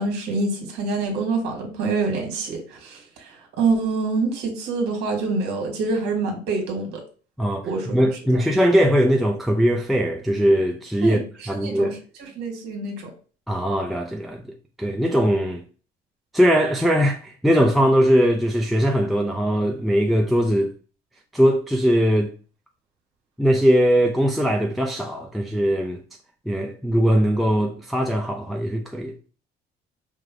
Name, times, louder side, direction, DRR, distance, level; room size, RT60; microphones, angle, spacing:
voice 1, 0.0-7.0 7.6-8.0 8.3-8.4 11.0-11.2 11.6-13.1, right 3 dB, 85° right, 1.5 m, -26 dB
voice 2, 7.4-12.0 13.5-15.6 16.3-20.7 21.3-22.3 23.4-26.0 26.5-29.1, equal, ahead, 0.4 m, -20 dB
4.9 x 2.0 x 3.7 m
cardioid pair, 110°, 17 cm